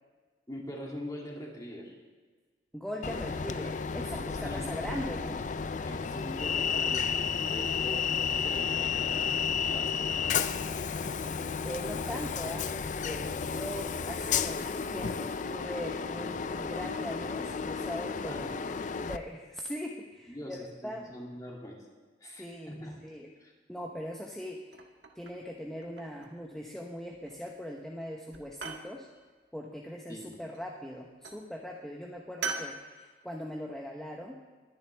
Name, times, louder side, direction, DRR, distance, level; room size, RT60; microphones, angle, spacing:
voice 1, 0.5-2.0 3.1-3.2 4.3-4.6 5.8-10.5 18.3-18.5 20.3-21.8 22.2-23.0 23.4-23.5 30.1-30.4, equal, 20° left, -2 dB, 2.3 m, -43 dB
voice 2, 2.7-5.4 11.6-18.7 19.0-21.1 22.4-23.3 23.7-24.8 25.1-29.1 29.5-34.3, equal, 5° left, 0 dB, 0.9 m, -40 dB
Train, 3.0-19.2, left 6 dB, 45° left, 0.4 m, -32 dB
sound 1, 24.7-25.5 25.8-26.5 27.3-27.7 28.0-28.9 30.3-30.9 31.2-31.5 32.4-32.8, right 4 dB, 80° right, 1.4 m, -40 dB
21.0 x 10.5 x 3.3 m, 1.4 s
head